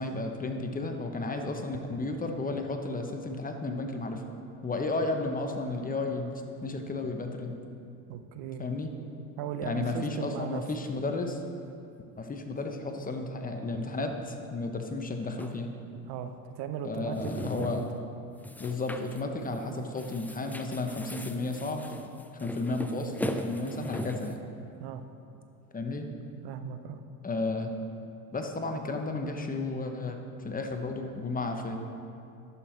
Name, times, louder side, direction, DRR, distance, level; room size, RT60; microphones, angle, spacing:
voice 1, 0.0-4.2 4.6-7.6 8.6-8.9 9.6-11.4 12.2-15.7 16.8-17.8 18.6-21.9 22.4-24.4 25.7-26.1 27.2-27.7 28.3-31.8, left 3 dB, 20° left, 4 dB, 1.1 m, -33 dB
voice 2, 8.1-8.6 9.4-10.6 16.0-17.9 19.5-19.9 24.8-25.0 26.4-27.0, right 8 dB, 65° right, 8 dB, 0.9 m, -38 dB
sound 1, 15.4-15.6 17.0-18.0 18.4-19.2 19.5-19.7 20.0-24.3, left 1 dB, 5° left, 0.4 m, -38 dB
11.5 x 7.0 x 4.5 m, 2.6 s
supercardioid pair, 95°, 41 cm